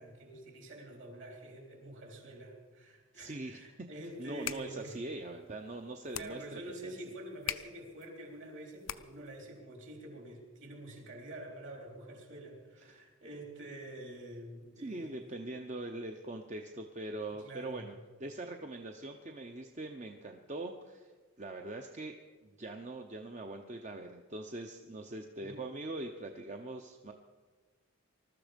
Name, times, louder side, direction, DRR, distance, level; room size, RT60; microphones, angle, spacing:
voice 1, 0.0-5.0 6.1-15.4 17.3-17.9 24.8-24.9 25.4-25.7, right 1 dB, 60° right, 1 dB, 3.8 m, -47 dB
voice 2, 3.1-3.6 4.2-6.9 12.8-13.1 14.8-17.9 18.2-21.1 21.4-22.1 22.4-27.1, right 2 dB, 35° right, 4 dB, 0.7 m, -42 dB
sound 1, 4.2-9.4, left 11 dB, 65° left, 0.6 m, -44 dB
20.5 x 13.0 x 5.2 m, 1.4 s
head